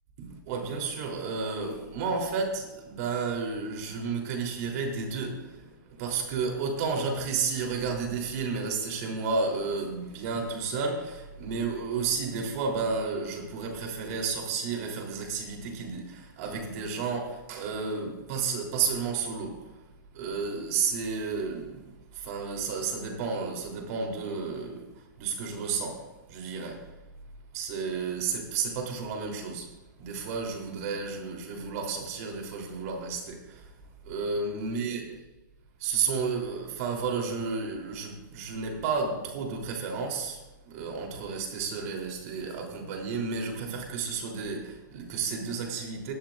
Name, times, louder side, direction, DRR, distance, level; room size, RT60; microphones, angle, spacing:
voice 1, 0.2-19.8 20.1-26.9 27.5-33.7 34.0-35.0 35.8-46.1, right 5 dB, 50° right, 3.6 m, -32 dB
17.5 x 12.0 x 2.6 m
hypercardioid pair, 125°, 11 cm